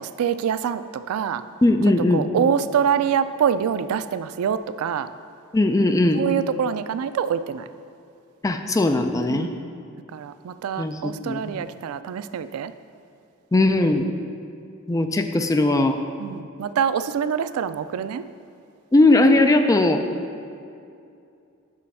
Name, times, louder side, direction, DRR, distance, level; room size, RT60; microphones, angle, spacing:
voice 1, 0.0-1.4 2.1-5.1 6.1-7.7 9.3-9.6 10.1-12.7 16.2-18.2, right 8 dB, 90° right, 13 dB, 0.3 m, -25 dB
voice 2, 1.6-2.3 5.5-6.2 8.4-9.5 10.8-11.6 13.5-14.1 14.9-16.0 18.9-20.0, left 2 dB, 15° left, 6 dB, 0.4 m, -19 dB
6.3 x 5.5 x 5.4 m, 2.5 s
head